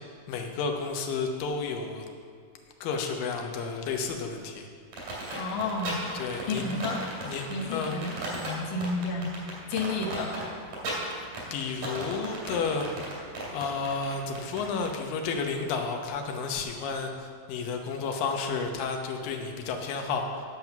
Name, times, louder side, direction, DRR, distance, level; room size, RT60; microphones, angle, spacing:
voice 1, 0.3-2.1 2.8-4.7 6.1-6.8 7.2-8.0 8.5-8.6 11.5-12.9 13.5-20.4, left 5 dB, 80° left, 3 dB, 2.6 m, -32 dB
sound 1, 4.9-14.9, right 2 dB, 65° right, 4.0 m, -36 dB
voice 2, 5.3-6.0 6.5-7.0 7.5-9.3 9.7-10.4, left 3 dB, 60° left, 0 dB, 1.2 m, -31 dB
9.4 x 7.6 x 5.8 m, 2.1 s
omnidirectional pair, 3.9 m